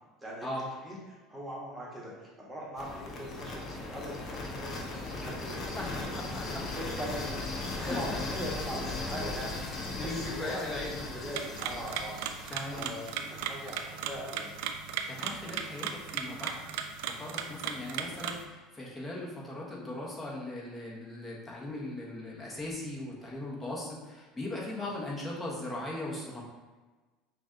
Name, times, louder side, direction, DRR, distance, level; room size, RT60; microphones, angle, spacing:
voice 1, 1.3-6.1 6.7-7.3 7.8-12.2 12.7-14.5, equal, 15° right, -4 dB, 1.3 m, -41 dB
sound 1, 2.8-14.7, left 2 dB, 40° left, 0.8 m, -38 dB
voice 2, 5.8-6.6 7.8-8.2 9.9-11.0 12.5-12.9 15.1-16.6 17.1-26.4, left 1 dB, 15° left, -4 dB, 1.2 m, -39 dB
sound 2, 11.3-18.4, right 7 dB, 75° right, 0.3 m, -37 dB
5.8 x 2.5 x 2.8 m, 1.2 s
supercardioid pair, 105°, 0 cm